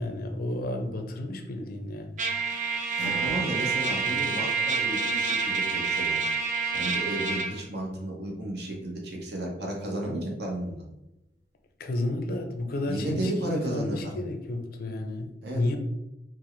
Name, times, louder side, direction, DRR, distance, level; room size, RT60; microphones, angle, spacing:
voice 1, 0.0-2.2 11.8-15.8, left 1 dB, 55° left, 5 dB, 0.5 m, -32 dB
Trumpet, 2.2-7.5, right 5 dB, 45° right, 0.5 m, -28 dB
voice 2, 3.0-6.2 6.7-10.8 12.9-14.1 15.4-15.8, right 1 dB, 65° right, -1 dB, 0.9 m, -33 dB
Acoustic guitar, 3.0-7.9, right 2 dB, 90° right, 1.2 m, -45 dB
4.4 x 2.1 x 3.1 m, 0.90 s
head